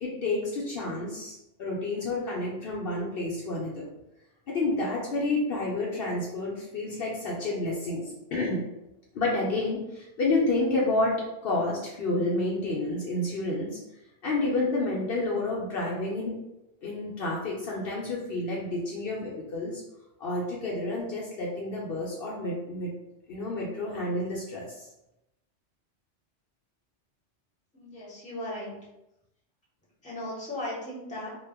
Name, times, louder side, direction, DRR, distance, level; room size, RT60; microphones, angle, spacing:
voice 1, 0.0-3.9 4.5-8.6 9.1-13.8 14.2-16.4 16.8-19.8 20.2-22.9 23.3-24.9, left 2 dB, 65° left, -4 dB, 0.7 m, -29 dB
voice 2, 27.7-28.8 30.0-31.3, left 1 dB, 10° left, -6 dB, 0.6 m, -36 dB
2.2 x 2.0 x 3.4 m, 0.88 s
omnidirectional pair, 1.2 m